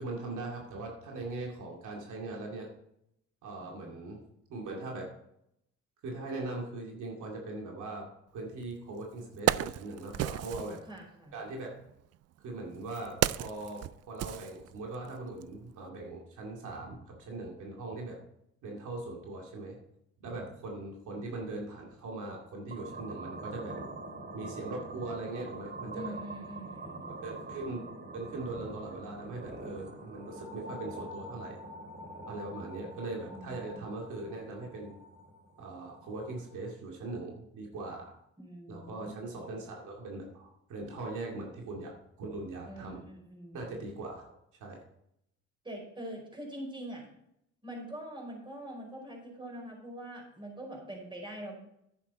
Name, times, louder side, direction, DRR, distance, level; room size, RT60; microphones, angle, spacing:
voice 1, 0.0-2.7 3.4-4.2 4.5-5.1 6.0-8.0 8.3-10.8 11.3-11.7 12.4-13.8 14.1-18.2 18.6-19.8 20.2-23.8 24.3-26.1 27.2-27.9 28.1-31.6 32.3-35.0 35.6-38.1 38.7-41.9 42.2-43.0 43.5-44.3 44.6-44.8, right 2 dB, 80° right, -1 dB, 2.4 m, -40 dB
voice 2, 3.6-4.0 10.4-11.4 25.9-27.4 33.3-33.9 38.4-39.2 42.6-43.7 45.6-47.0 47.6-51.5, right 1 dB, 15° right, 0 dB, 4.9 m, -44 dB
Wood, 8.6-8.7 9.1-10.8 11.8-15.1 15.4-15.6, right 13 dB, 55° right, 0.4 m, -33 dB
sound 1, 22.7-36.7, right 2 dB, 35° right, 2.5 m, -45 dB
10.5 x 8.4 x 4.1 m, 0.77 s
cardioid pair, 90°, 30 cm